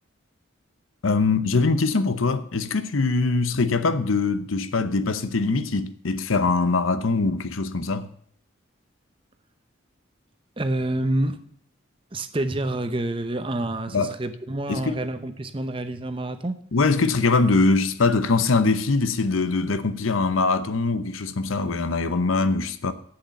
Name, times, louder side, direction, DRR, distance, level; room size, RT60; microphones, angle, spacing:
voice 1, 1.0-8.1 13.9-14.2 14.7-15.0 16.7-22.9, left 3 dB, 85° left, 0.8 m, -22 dB
voice 2, 10.6-11.4 12.1-16.6, right 1 dB, 25° right, 0.7 m, -28 dB
7.8 x 7.1 x 8.1 m
head